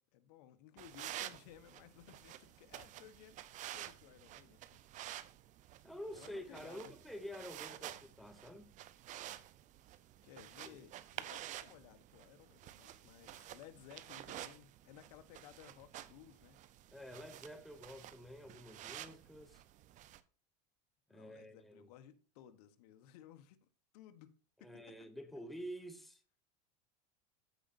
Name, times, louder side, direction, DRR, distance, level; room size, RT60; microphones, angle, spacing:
voice 1, 0.0-3.4 3.7-4.8 6.1-6.9 10.2-16.6 21.1-23.7 23.9-24.3 24.6-24.7, left 11 dB, 70° left, 1.1 m, -58 dB
sound 1, 0.8-20.2, right 13 dB, 35° right, 0.6 m, -51 dB
voice 2, 5.8-8.7 10.6-10.8 16.9-19.6 21.1-21.9 24.6-26.2, equal, ahead, 1.1 m, -49 dB
14.5 x 5.1 x 2.6 m
supercardioid pair, 125°, 21 cm